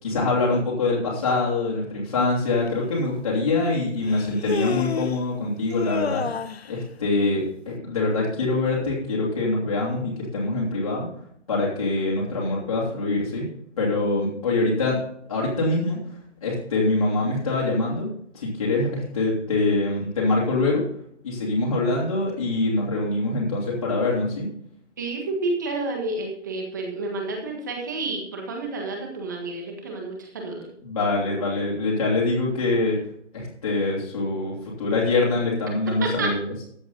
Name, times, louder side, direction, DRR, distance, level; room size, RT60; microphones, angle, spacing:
voice 1, 0.0-6.3 6.7-11.1 11.5-13.5 13.8-15.0 15.3-16.0 16.4-20.9 21.2-24.5 30.8-33.0 33.3-36.6, left 2 dB, 30° left, -5 dB, 2.9 m, -24 dB
Human voice, 2.7-2.8 4.0-5.2 5.7-6.7, left 6 dB, 60° left, 0.8 m, -29 dB
voice 2, 25.0-30.7 36.0-36.3, right 2 dB, 15° right, 2 dB, 1.5 m, -30 dB
14.0 x 8.0 x 4.0 m, 0.68 s
hypercardioid pair, 175°, 36 cm